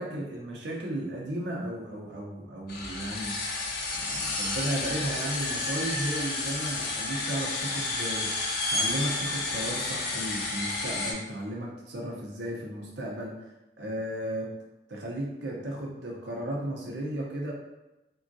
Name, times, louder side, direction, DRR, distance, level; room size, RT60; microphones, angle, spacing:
voice 1, 0.0-3.4 3.9-8.3 8.7-13.4 13.8-14.5 14.9-17.5, right 1 dB, 70° right, -2 dB, 0.7 m, -34 dB
sound 1, 2.7-11.1, left 2 dB, 55° left, 0.5 m, -31 dB
3.6 x 2.3 x 2.6 m, 0.99 s
head